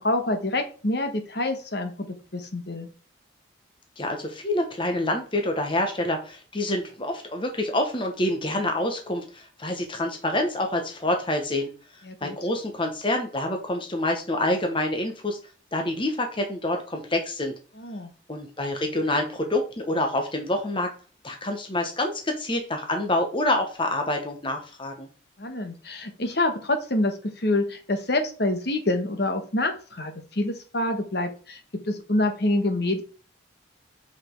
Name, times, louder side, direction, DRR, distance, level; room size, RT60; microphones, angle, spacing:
voice 1, 0.0-2.1 2.3-2.9 12.0-12.4 17.8-18.1 25.4-31.6 31.9-33.0, left 2 dB, 55° left, 6 dB, 1.3 m, -26 dB
voice 2, 4.0-15.4 15.7-17.5 18.3-20.9 21.2-25.1, left 1 dB, 25° left, 4 dB, 1.1 m, -27 dB
6.0 x 5.0 x 4.5 m, 0.38 s
head